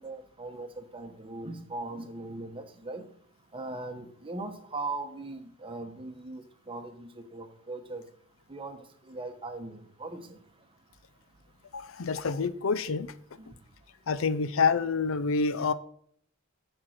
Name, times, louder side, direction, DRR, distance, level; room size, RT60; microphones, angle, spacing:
voice 1, 0.0-3.1 3.5-8.0 8.5-8.8 9.0-10.4 13.4-13.5, right 2 dB, 25° right, 7 dB, 1.0 m, -39 dB
voice 2, 11.7-13.1 14.1-15.7, left 5 dB, 65° left, 14 dB, 0.5 m, -27 dB
10.5 x 4.4 x 6.4 m, 0.63 s
head